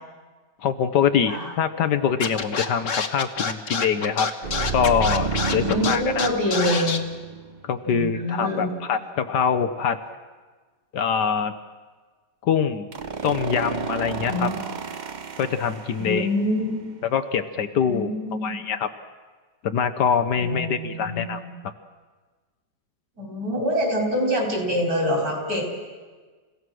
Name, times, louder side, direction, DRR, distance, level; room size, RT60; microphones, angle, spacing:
voice 1, 0.6-4.3 4.7-6.3 7.6-10.0 10.9-11.5 12.4-12.9 13.2-14.5 15.4-16.3 17.0-18.1 18.4-18.9 19.6-21.4, left 7 dB, 70° left, 9 dB, 1.5 m, -24 dB
Scratching (performance technique), 2.2-7.0, left 5 dB, 45° left, 1.4 m, -27 dB
sound 1, 4.4-7.9 12.9-16.4, right 5 dB, 35° right, 0.7 m, -31 dB
voice 2, 5.6-7.0 7.9-8.8 14.3-14.6 16.0-16.9 17.9-18.6 20.4-21.5 23.2-25.6, equal, 50° right, 1 dB, 5.0 m, -25 dB
29.0 x 16.0 x 6.2 m, 1.4 s
omnidirectional pair, 1.9 m